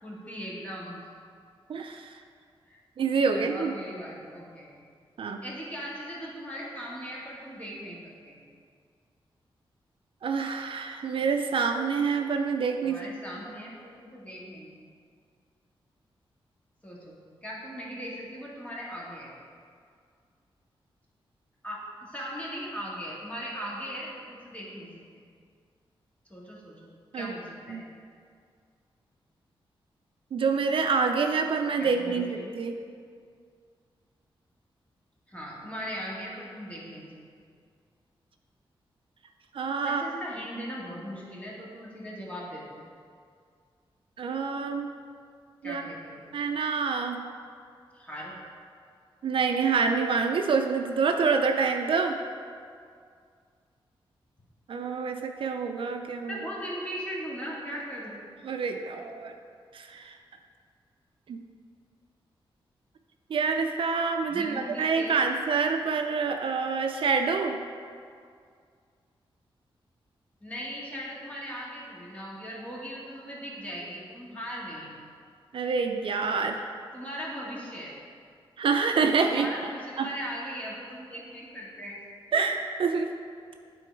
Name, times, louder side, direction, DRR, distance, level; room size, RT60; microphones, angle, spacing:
voice 1, 0.0-1.1 2.7-2.8 3.3-4.7 5.4-8.4 12.8-14.9 16.8-17.2 17.4-19.3 21.6-25.2 26.3-27.9 31.8-32.6 35.3-37.0 39.8-42.8 45.6-46.3 47.9-48.4 56.3-58.2 64.2-65.2 70.4-74.9 76.9-77.9 79.3-82.0, equal, 15° left, -5 dB, 1.9 m, -39 dB
voice 2, 1.7-2.1 3.0-3.7 5.2-5.4 10.2-13.0 27.1-27.3 27.7-27.8 30.3-32.8 39.5-40.1 44.2-44.9 45.6-45.8 46.3-47.2 49.2-52.2 54.7-56.4 58.4-59.3 59.7-60.2 61.3-61.4 63.3-67.6 75.5-76.7 78.6-79.5 80.0-80.1 82.3-83.1, right 5 dB, 65° right, 5 dB, 0.5 m, -27 dB
8.9 x 3.9 x 4.6 m, 2.2 s
cardioid pair, 85°, 10 cm